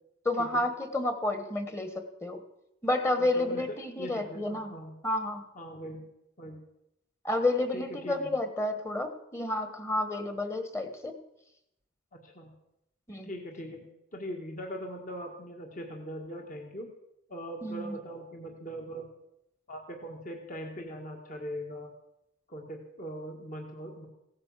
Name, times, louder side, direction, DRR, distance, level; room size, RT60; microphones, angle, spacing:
voice 1, 0.2-2.4 2.8-4.7 5.0-5.4 7.2-11.1 13.1-13.3 17.6-18.0, left 2 dB, 15° left, 8 dB, 1.4 m, -30 dB
voice 2, 3.2-5.0 5.6-6.0 6.4-6.6 7.7-8.3 12.1-12.5 13.2-13.8 14.1-16.9 17.3-19.0 19.7-21.9 22.5-24.1, equal, 40° left, 2 dB, 1.9 m, -41 dB
16.5 x 9.7 x 7.4 m, 0.83 s
head